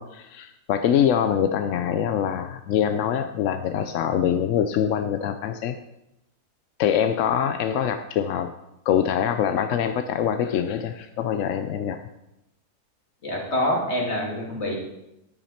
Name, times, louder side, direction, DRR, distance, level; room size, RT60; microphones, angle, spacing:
voice 1, 0.0-5.7 6.8-8.5 8.9-12.0, left 9 dB, 65° left, 8 dB, 0.8 m, -24 dB
voice 2, 13.2-14.7, left 1 dB, 45° left, -2 dB, 2.7 m, -26 dB
10.5 x 9.0 x 4.3 m, 0.87 s
omnidirectional pair, 1.6 m